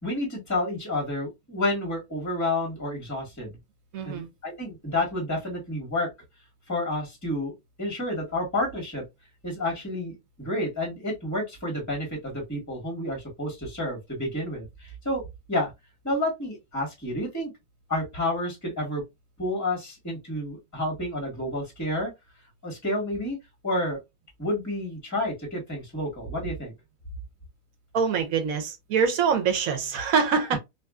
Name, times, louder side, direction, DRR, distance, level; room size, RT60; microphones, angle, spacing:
voice 1, 0.0-3.6 4.0-6.1 6.7-7.5 7.8-9.0 9.4-15.2 15.5-15.7 16.0-17.5 17.9-19.0 19.4-22.1 22.6-23.4 23.6-24.0 24.4-26.7, left 1 dB, 10° left, 1.2 m, -30 dB
voice 2, 3.9-4.3 27.9-30.6, right 6 dB, 75° right, 1.2 m, -24 dB
2.7 x 2.5 x 2.2 m
omnidirectional pair, 1.5 m